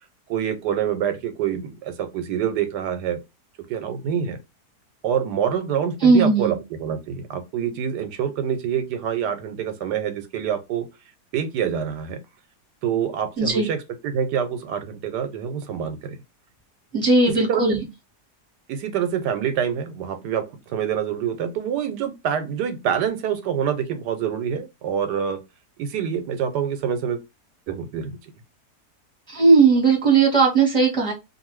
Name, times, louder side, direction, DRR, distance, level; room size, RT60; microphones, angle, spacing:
voice 1, 0.3-3.2 3.7-4.4 5.0-10.9 11.3-12.2 12.8-16.2 17.3-17.6 18.7-25.4 25.8-27.2 27.7-28.2, right 8 dB, 85° right, 1.2 m, -26 dB
voice 2, 6.0-6.6 13.4-13.7 16.9-17.8 29.3-31.1, right 4 dB, 5° left, 1.0 m, -17 dB
2.6 x 2.6 x 3.0 m
omnidirectional pair, 1.8 m